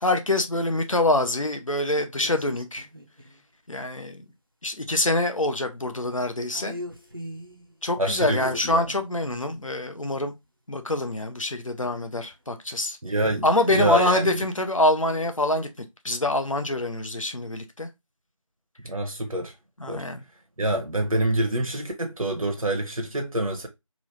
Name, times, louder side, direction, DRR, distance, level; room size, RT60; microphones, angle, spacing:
voice 1, 0.0-2.9 3.7-4.2 4.6-6.7 7.8-10.3 10.7-13.0 13.4-15.7 16.0-17.9 19.8-20.2, left 2 dB, 65° left, 0.7 m, -25 dB
sound 1, 1.9-3.4 6.5-7.7 8.7-10.3 13.6-15.7, right 1 dB, 40° right, 0.5 m, -38 dB
voice 2, 8.0-8.8 13.0-14.4 18.8-19.5 19.9-20.0 20.6-23.7, right 1 dB, 75° right, 0.8 m, -26 dB
3.0 x 2.5 x 3.1 m
figure-of-eight pair, 180°, 18 cm